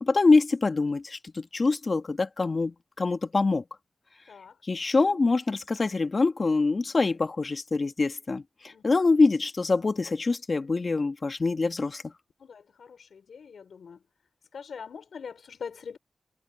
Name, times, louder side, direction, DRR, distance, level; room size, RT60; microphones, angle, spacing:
voice 1, 0.0-3.6 4.6-12.1, left 3 dB, 50° left, 1.9 m, -25 dB
voice 2, 12.4-14.0 14.5-16.0, left 6 dB, 80° left, 4.0 m, -42 dB
cardioid pair, 45°, 0 cm